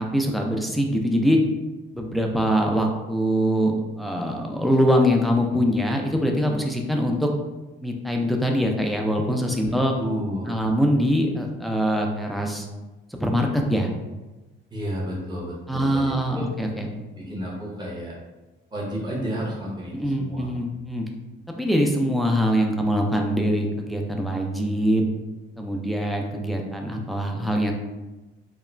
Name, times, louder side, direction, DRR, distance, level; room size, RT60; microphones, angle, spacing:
voice 1, 0.0-1.4 1.9-7.3 7.8-9.9 10.5-12.7 13.1-13.9 15.7-16.9 19.9-21.1 21.6-25.0 25.6-27.7, equal, ahead, 1 dB, 0.4 m, -23 dB
voice 2, 9.6-10.6 14.7-16.4 17.2-18.1 18.7-20.5, equal, 20° right, -4 dB, 0.8 m, -31 dB
2.3 x 2.0 x 3.1 m, 1.1 s
cardioid pair, 90°, 20 cm